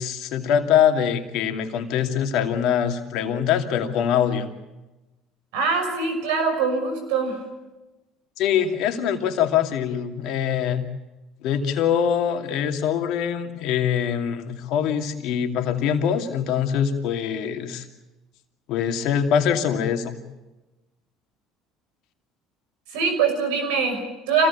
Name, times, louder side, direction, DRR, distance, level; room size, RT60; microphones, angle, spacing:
voice 1, 0.0-4.5 8.4-10.8 11.4-17.9 18.7-20.2, left 8 dB, 70° left, 5 dB, 2.6 m, -23 dB
voice 2, 5.5-7.4 22.9-24.5, right 4 dB, 80° right, 6 dB, 5.8 m, -23 dB
26.0 x 17.5 x 8.5 m, 1.1 s
hypercardioid pair, 70°, 0 cm